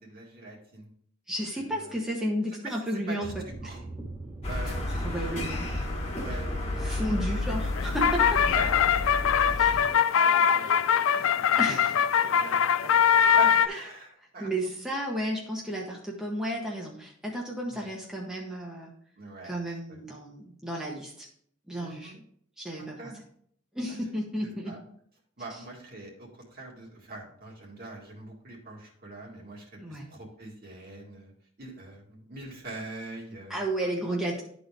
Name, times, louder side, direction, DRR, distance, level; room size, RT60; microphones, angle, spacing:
voice 1, 0.0-0.9 1.8-2.0 2.6-3.3 3.6-3.8 4.5-5.3 5.6-6.9 8.4-10.8 11.2-14.5 17.7-17.8 19.2-19.6 19.9-20.0 21.8-22.2 22.8-23.2 23.9-24.0 24.4-24.8 25.4-31.3 31.6-33.7 34.0-34.2, right 2 dB, 50° right, -2 dB, 2.0 m, -43 dB
voice 2, 1.3-3.8 4.9-5.7 6.8-8.4 9.6-10.0 11.5-11.9 13.7-13.8 14.4-18.9 19.4-21.3 21.7-22.1 22.6-23.0 23.7-24.7 29.8-30.1 33.5-34.4, right 1 dB, 5° right, -3 dB, 0.9 m, -33 dB
sound 1, 3.2-9.9, right 2 dB, 20° right, 1.3 m, -42 dB
sound 2, 4.4-9.8, left 2 dB, 30° left, 1.4 m, -31 dB
sound 3, 7.5-13.7, left 8 dB, 85° left, 0.4 m, -22 dB
11.5 x 4.1 x 3.4 m, 0.65 s
head